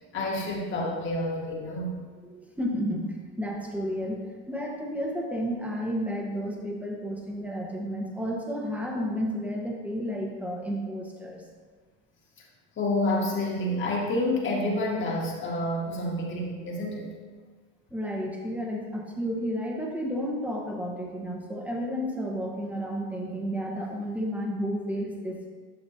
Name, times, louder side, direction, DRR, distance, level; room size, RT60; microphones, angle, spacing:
voice 1, 0.0-2.0 12.8-17.1, left 1 dB, 35° left, -2 dB, 1.9 m, -29 dB
voice 2, 2.2-11.4 17.9-25.5, equal, 5° right, -1 dB, 1.3 m, -32 dB
10.5 x 5.9 x 2.9 m, 1.5 s
supercardioid pair, 115°, 36 cm